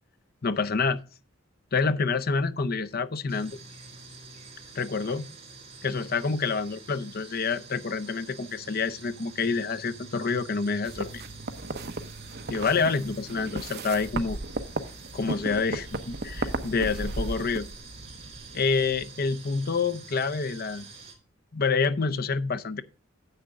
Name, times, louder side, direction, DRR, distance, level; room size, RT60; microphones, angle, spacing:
voice 1, 0.4-1.0 1.7-3.6 4.7-5.3 5.8-11.2 12.5-14.4 15.1-17.7 18.5-20.9 21.5-22.8, left 4 dB, 50° left, 0.7 m, -27 dB
sound 1, 3.3-21.1, right 4 dB, 30° right, 3.2 m, -47 dB
sound 2, 10.8-19.0, right 2 dB, 55° right, 0.9 m, -35 dB
9.6 x 7.8 x 3.7 m
head